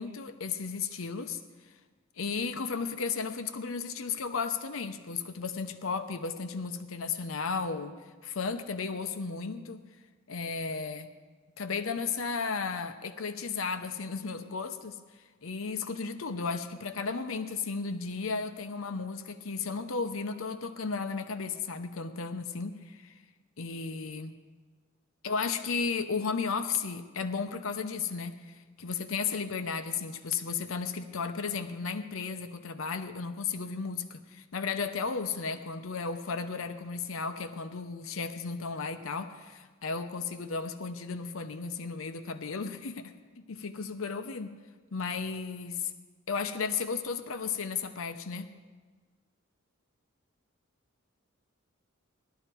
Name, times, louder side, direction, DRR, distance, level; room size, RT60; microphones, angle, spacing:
voice 1, 0.0-1.4 2.2-9.8 10.3-11.1 11.6-15.0 15.4-23.1 23.6-24.4 25.2-43.1 43.5-44.5 44.9-45.9 46.3-48.5, left 5 dB, 75° left, 9 dB, 0.8 m, -34 dB
18.0 x 12.0 x 4.5 m, 1.4 s
head